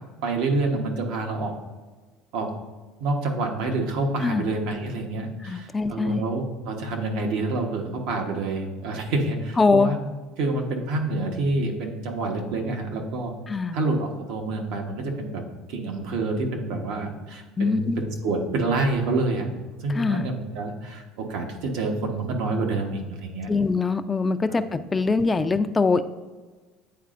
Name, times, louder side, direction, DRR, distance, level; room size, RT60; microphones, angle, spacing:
voice 1, 0.2-1.5 2.3-2.5 3.0-10.0 10.4-13.3 13.7-15.4 15.7-19.5 19.8-23.5 24.5-24.6, right 2 dB, 75° right, 2 dB, 1.0 m, -27 dB
voice 2, 5.5-6.2 9.6-9.9 13.5-13.8 17.6-18.0 19.9-20.2 23.5-24.6 24.9-26.0, left 4 dB, 20° left, 10 dB, 0.4 m, -22 dB
9.3 x 4.1 x 2.5 m, 1.3 s
supercardioid pair, 105°, 0 cm